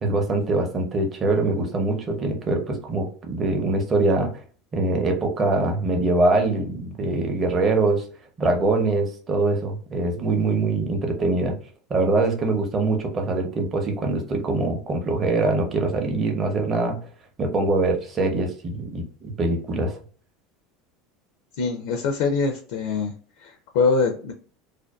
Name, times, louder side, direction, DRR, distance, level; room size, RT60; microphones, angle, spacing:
voice 1, 0.0-4.3 4.7-8.0 8.4-11.6 11.9-17.0 17.4-20.0, right 2 dB, 30° right, 3 dB, 0.7 m, -23 dB
voice 2, 21.6-23.1 23.4-24.3, left 4 dB, 75° left, 4 dB, 0.4 m, -23 dB
2.5 x 2.2 x 2.3 m, 0.42 s
supercardioid pair, 120°, 0 cm